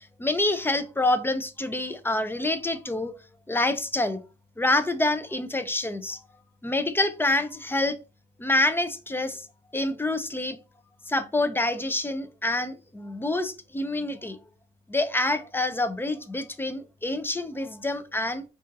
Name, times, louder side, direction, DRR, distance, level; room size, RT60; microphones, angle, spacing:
voice 1, 0.2-3.1 3.5-4.2 4.6-6.2 6.6-8.0 8.4-9.4 9.7-10.6 11.1-14.4 14.9-18.4, left 2 dB, 10° left, 0.5 m, -27 dB
4.9 x 2.5 x 2.6 m
cardioid pair, 90°, 20 cm